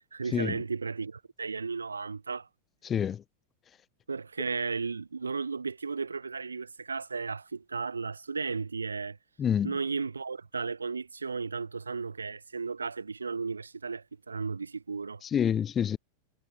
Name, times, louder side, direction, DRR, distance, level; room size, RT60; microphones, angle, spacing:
voice 1, 0.1-2.5 4.1-9.2 9.6-15.2, right 4 dB, 75° right, 1.7 m, -34 dB
voice 2, 2.8-3.2 9.4-9.7 15.2-16.0, left 8 dB, 25° left, 0.5 m, -27 dB
figure-of-eight pair, 90°, 0 cm